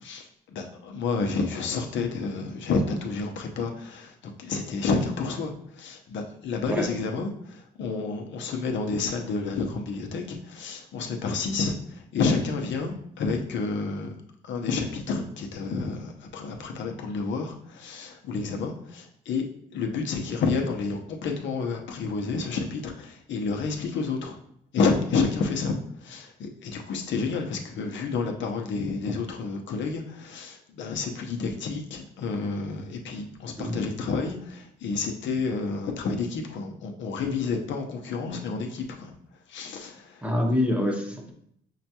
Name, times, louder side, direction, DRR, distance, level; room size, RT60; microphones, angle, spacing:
voice 1, 0.0-14.1 14.5-19.5 19.7-24.4 24.7-25.8 26.0-39.1 39.5-40.2, left 4 dB, 70° left, 3 dB, 0.7 m, -30 dB
voice 2, 33.6-34.0 40.2-41.3, left 1 dB, 5° right, 1 dB, 0.8 m, -26 dB
5.7 x 2.2 x 2.8 m, 0.68 s
cardioid pair, 90°, 20 cm